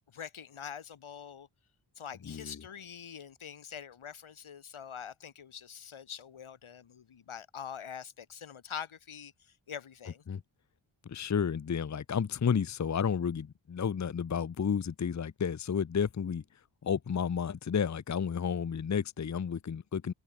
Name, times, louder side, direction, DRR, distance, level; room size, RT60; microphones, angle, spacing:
voice 1, 0.1-1.5 2.0-10.2, left 8 dB, 90° left, 2.1 m, -44 dB
voice 2, 2.2-2.6 10.3-10.4 11.1-16.4 16.8-20.1, left 7 dB, 35° left, 0.7 m, -31 dB
wide cardioid pair, 140°, 48 cm